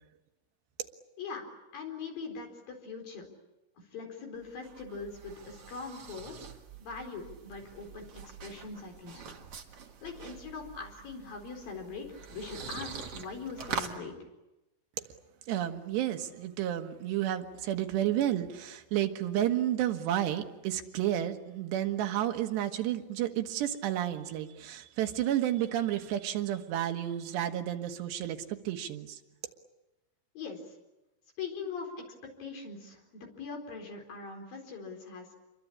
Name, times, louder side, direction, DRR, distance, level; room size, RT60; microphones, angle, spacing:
voice 1, 1.7-3.3 3.9-6.4 6.8-9.3 10.0-14.2 30.4-30.7 31.4-32.0 32.4-35.4, left 4 dB, 55° left, 3 dB, 5.8 m, -41 dB
sound 1, 4.4-14.0, right 6 dB, 45° right, 2.2 m, -44 dB
voice 2, 15.5-29.2, right 12 dB, 85° right, 6 dB, 3.6 m, -31 dB
28.5 x 23.0 x 8.7 m, 0.98 s
omnidirectional pair, 4.8 m